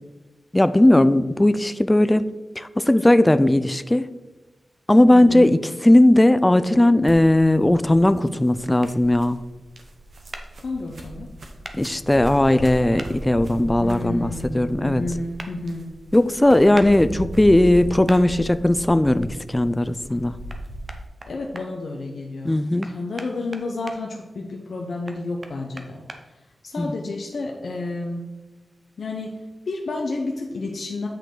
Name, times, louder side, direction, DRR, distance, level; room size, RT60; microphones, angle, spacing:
voice 1, 0.5-2.3 2.6-4.1 4.9-9.4 11.7-15.0 16.1-20.3 22.4-22.9 26.8-26.9, left 1 dB, 15° left, 13 dB, 0.3 m, -17 dB
voice 2, 5.1-5.6 10.6-11.3 13.8-15.9 21.2-22.6 22.8-28.3 29.0-29.4 29.7-31.1, left 2 dB, 70° left, 0 dB, 0.8 m, -31 dB
sound 1, 7.0-21.1, equal, 60° right, 1.0 m, -37 dB
sound 2, 8.8-8.9 10.3-10.5 11.6-11.8 13.0-13.1 15.4-15.5 16.7-16.9 18.1-18.2 20.5-20.6 20.9-21.7 22.8-24.0 25.1-26.2, right 2 dB, 35° right, 0.7 m, -37 dB
8.7 x 5.2 x 3.9 m, 1.1 s
wide cardioid pair, 130°, 0 cm